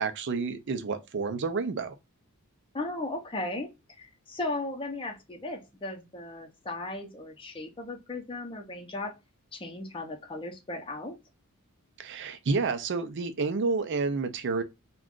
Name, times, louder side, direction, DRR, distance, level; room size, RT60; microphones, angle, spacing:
voice 1, 0.0-1.9 12.0-14.6, right 4 dB, 55° right, 0.4 m, -29 dB
voice 2, 2.7-3.7 4.0-9.1 9.5-11.2, left 2 dB, 25° left, 0.6 m, -36 dB
2.5 x 2.2 x 3.5 m
head